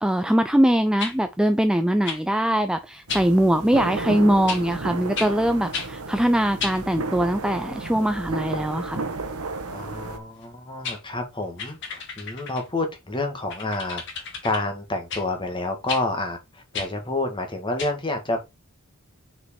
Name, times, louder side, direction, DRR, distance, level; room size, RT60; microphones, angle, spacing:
voice 1, 0.0-9.0, right 1 dB, 5° right, 0.4 m, -22 dB
sound 1, 1.0-1.2 2.0-2.2 3.1-3.3 4.5-4.6 5.1-5.3 5.7-5.9 6.6-6.8 10.4-10.5 10.8-11.0 11.6-12.7 13.5-14.6 15.1-15.2 15.9-16.0 16.7-16.9 17.8-17.9, left 5 dB, 55° left, 2.4 m, -32 dB
sound 2, 3.1-10.2, right 3 dB, 85° right, 1.2 m, -32 dB
voice 2, 9.7-14.0 14.4-18.4, left 2 dB, 20° left, 1.8 m, -29 dB
6.3 x 5.1 x 4.3 m
head